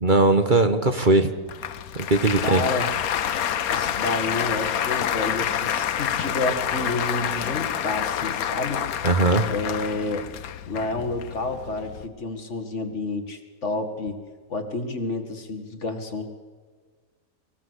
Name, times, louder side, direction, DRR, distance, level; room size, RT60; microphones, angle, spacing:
voice 1, 0.0-1.3 1.9-2.6 9.0-9.4, right 3 dB, 35° right, 8 dB, 1.3 m, -19 dB
Applause, 1.5-12.1, left 9 dB, 90° left, 1.3 m, -28 dB
voice 2, 2.4-2.9 3.7-8.9 9.5-10.3 10.7-16.3, left 2 dB, 55° left, 6 dB, 2.4 m, -30 dB
24.5 x 16.5 x 8.2 m, 1.5 s
omnidirectional pair, 1.5 m